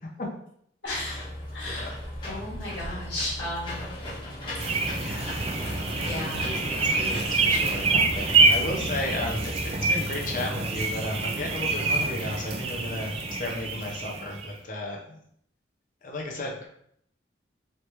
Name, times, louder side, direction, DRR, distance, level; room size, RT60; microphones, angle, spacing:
voice 1, 0.8-1.2 1.5-1.9 2.3-3.9 4.6-4.8 6.0-6.5, left 1 dB, 70° left, -7 dB, 1.5 m, -34 dB
Engine / Mechanisms, 0.9-9.8, left 1 dB, 25° left, 1.0 m, -37 dB
sound 1, 4.6-14.5, right 3 dB, 30° right, 0.4 m, -26 dB
voice 2, 5.0-15.2 16.0-16.7, left 2 dB, 45° left, 0 dB, 0.7 m, -34 dB
3.2 x 2.9 x 3.2 m, 0.70 s
head